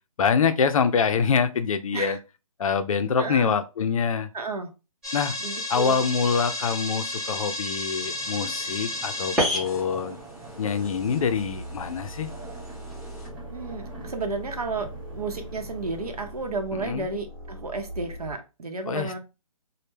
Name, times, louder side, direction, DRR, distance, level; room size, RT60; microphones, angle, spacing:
voice 1, 0.2-2.2 2.6-4.3 5.1-5.4 5.7-10.2 10.6-12.3 16.7-17.1 18.9-19.2, left 6 dB, 65° left, 0.4 m, -25 dB
voice 2, 3.2-3.5 4.3-4.7 5.4-6.0 13.5-19.2, right 3 dB, 85° right, 0.7 m, -32 dB
sound 1, 5.0-13.3, left 1 dB, 5° right, 0.4 m, -32 dB
sound 2, 8.0-16.5, right 2 dB, 35° right, 0.9 m, -45 dB
sound 3, 10.3-18.3, equal, 70° right, 1.0 m, -41 dB
2.1 x 2.1 x 3.0 m
hypercardioid pair, 155°, 19 cm